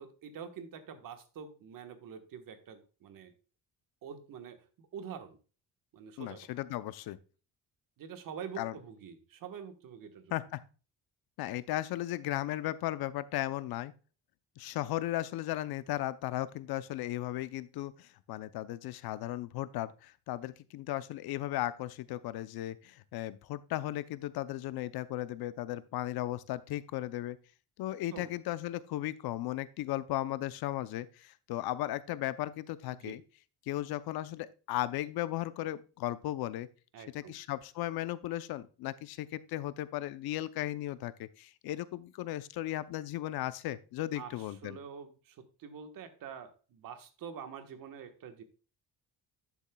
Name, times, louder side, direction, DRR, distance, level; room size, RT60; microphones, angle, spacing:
voice 1, 0.0-3.3 4.0-5.4 5.9-6.5 8.0-10.3 28.1-28.3 32.9-33.2 36.9-37.4 44.1-48.4, right 7 dB, 65° right, 8 dB, 1.3 m, -46 dB
voice 2, 6.2-7.2 8.6-8.8 10.3-10.6 11.4-13.9 14.6-27.4 27.8-33.2 33.7-36.7 37.1-44.8, left 14 dB, 80° left, 15 dB, 0.6 m, -36 dB
11.5 x 7.1 x 2.2 m, 0.35 s
cardioid pair, 140°, 37 cm